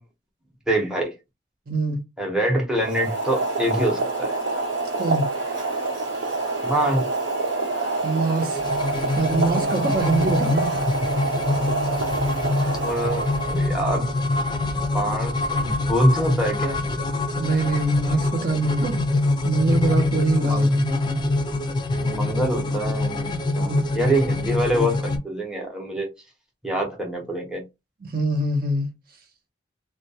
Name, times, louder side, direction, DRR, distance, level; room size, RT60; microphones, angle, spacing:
voice 1, 0.7-1.1 2.2-4.4 6.6-7.0 12.8-14.1 14.9-16.8 20.4-20.7 22.0-26.1 26.6-27.6, right 1 dB, 5° right, 0.7 m, -25 dB
voice 2, 1.7-2.0 5.0-5.3 8.0-8.6 9.1-10.7 17.4-19.0 19.4-21.3 23.6-23.8 28.1-28.9, right 2 dB, 50° right, 0.7 m, -24 dB
Boiling, 2.8-13.8, right 3 dB, 80° right, 1.1 m, -26 dB
sound 1, 8.5-25.2, left 2 dB, 25° left, 0.4 m, -25 dB
2.2 x 2.2 x 2.7 m
head